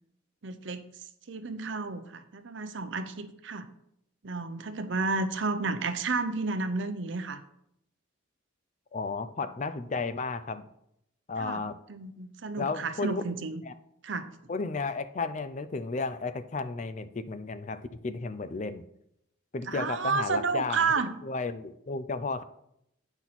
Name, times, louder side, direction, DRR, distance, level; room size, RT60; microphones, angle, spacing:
voice 1, 0.4-0.9 1.3-3.7 4.2-7.4 11.4-11.6 11.9-13.6 14.0-14.3 19.7-21.1, right 4 dB, 60° right, 10 dB, 0.7 m, -31 dB
voice 2, 8.9-10.6 11.3-11.8 12.6-13.2 13.6-13.7 14.5-18.8 19.5-20.8 21.2-22.4, left 4 dB, 35° left, 12 dB, 0.4 m, -33 dB
8.8 x 6.0 x 4.1 m, 0.76 s
head